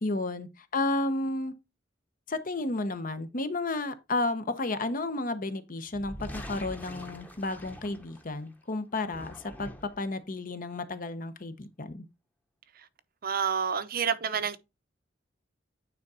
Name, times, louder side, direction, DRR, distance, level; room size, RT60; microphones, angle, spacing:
voice 1, 0.0-1.5 2.3-12.0, left 2 dB, 45° left, 0.9 m, -32 dB
sound 1, 5.9-8.5 8.9-10.1, equal, 10° left, 1.0 m, -44 dB
voice 2, 13.2-14.6, right 7 dB, 50° right, 0.8 m, -28 dB
9.4 x 3.7 x 4.2 m
head